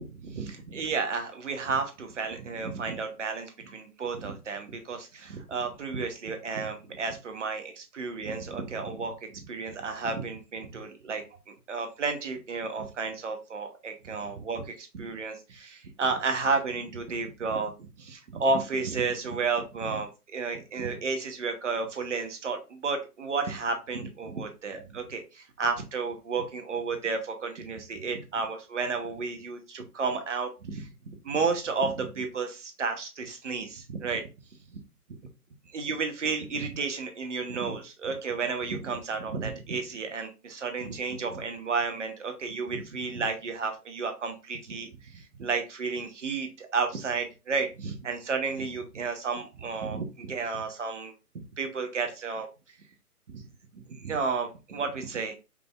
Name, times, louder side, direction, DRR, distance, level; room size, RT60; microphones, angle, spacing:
voice 1, 0.0-30.9 31.2-34.3 35.7-52.5 53.3-53.5 53.7-55.3, right 4 dB, 50° right, 5 dB, 1.1 m, -32 dB
5.1 x 3.4 x 2.4 m, 0.28 s
figure-of-eight pair, 135°, 47 cm